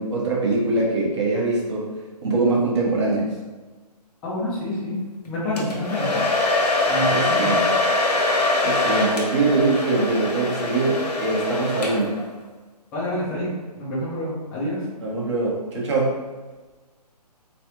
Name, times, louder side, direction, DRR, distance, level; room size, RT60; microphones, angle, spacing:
voice 1, 0.0-1.8 2.2-3.3 7.1-7.6 8.6-12.1 15.0-16.1, right 3 dB, 45° right, -3 dB, 1.2 m, -23 dB
voice 2, 4.2-5.0 5.3-6.2 6.9-7.6 12.9-14.8, left 1 dB, 5° left, -8 dB, 0.4 m, -27 dB
Domestic sounds home sounds, 5.6-12.3, left 2 dB, 75° left, 1.0 m, -23 dB
3.7 x 3.3 x 2.9 m, 1.3 s
hypercardioid pair, 150°, 21 cm